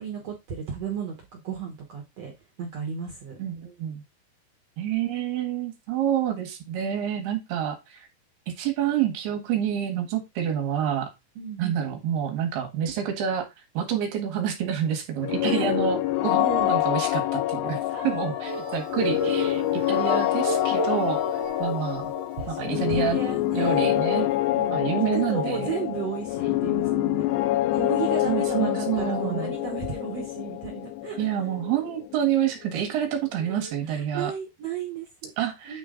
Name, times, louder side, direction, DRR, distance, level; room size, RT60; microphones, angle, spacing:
voice 1, 0.0-2.3 2.6-3.4 11.3-11.8 15.4-15.7 16.4-16.7 17.9-19.0 22.4-22.6 22.9-23.9 24.5-24.8 25.1-27.2 27.7-31.3 33.4-35.3 35.6-35.8, right 6 dB, 90° right, 1.4 m, -34 dB
voice 2, 3.4-4.0 4.8-8.1 8.6-11.1 11.6-13.5 13.7-16.4 16.7-22.1 22.5-23.2 23.5-24.3 24.7-25.7 28.3-29.5 31.2-34.3 35.4-35.8, right 9 dB, 70° right, 3.2 m, -28 dB
sound 1, 15.2-32.9, left 15 dB, 85° left, 2.8 m, -26 dB
sound 2, 18.4-22.3 22.8-22.9 23.3-23.4, right 1 dB, 45° right, 2.5 m, -33 dB
9.3 x 3.9 x 3.8 m
omnidirectional pair, 5.0 m